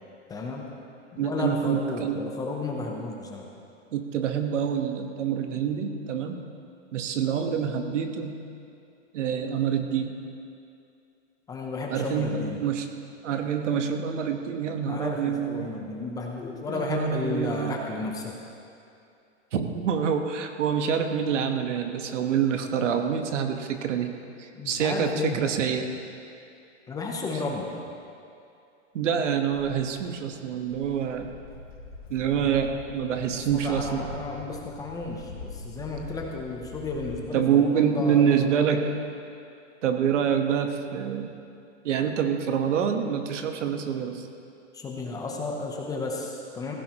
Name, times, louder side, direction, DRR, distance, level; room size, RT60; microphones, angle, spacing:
voice 1, 0.3-0.7 1.1-3.5 11.5-12.6 14.9-18.3 24.5-25.4 26.9-27.7 32.4-32.7 33.3-38.5 44.7-46.7, left 3 dB, 10° left, 0 dB, 0.7 m, -33 dB
voice 2, 1.2-2.2 3.9-6.5 6.9-8.5 9.1-10.1 11.9-12.9 13.2-15.7 16.7-17.8 19.5-24.1 24.4-25.9 28.9-31.3 32.1-34.1 37.3-39.0 39.8-41.3 41.8-44.3, right 8 dB, 75° right, 6 dB, 1.3 m, -26 dB
Walk footsteps, 29.5-37.2, left 3 dB, 75° left, 3.1 m, -42 dB
16.0 x 15.5 x 3.0 m, 2.6 s
hypercardioid pair, 155°, 37 cm